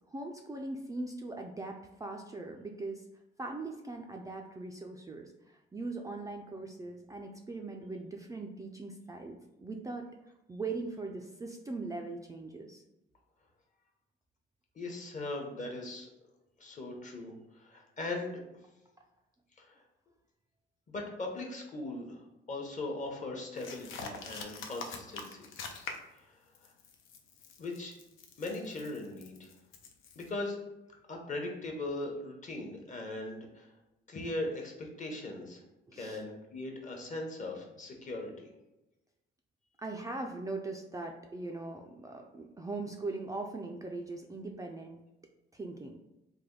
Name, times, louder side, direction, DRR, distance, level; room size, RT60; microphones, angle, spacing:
voice 1, 0.1-3.0 3.4-10.1 10.5-12.8 35.9-36.2 39.8-45.0 45.5-46.0, right 3 dB, 15° right, 2 dB, 0.3 m, -40 dB
voice 2, 14.8-16.1 16.6-18.4 19.6-19.8 20.9-25.5 26.2-26.3 27.6-27.9 28.4-29.5 30.2-30.6 31.1-33.7 34.1-35.6 35.9-38.5, left 2 dB, 40° left, 1 dB, 0.9 m, -39 dB
sound 1, 23.5-26.2 26.5-30.3, left 4 dB, 85° left, 0.5 m, -45 dB
3.4 x 2.1 x 3.7 m, 0.94 s
cardioid pair, 90°, 20 cm